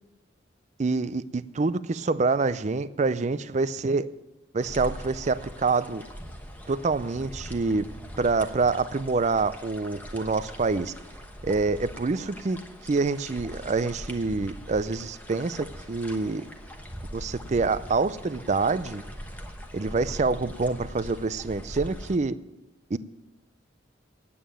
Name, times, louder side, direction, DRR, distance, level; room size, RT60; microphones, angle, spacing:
voice 1, 0.8-4.1 4.5-6.0 6.7-7.9 8.2-10.9 11.4-12.6 12.8-16.4 17.1-19.0 19.7-22.4 22.9-23.0, right 3 dB, 40° right, 15 dB, 0.4 m, -26 dB
sound 1, 4.6-22.2, equal, 10° left, 1.0 m, -41 dB
9.3 x 8.6 x 8.8 m, 1.0 s
head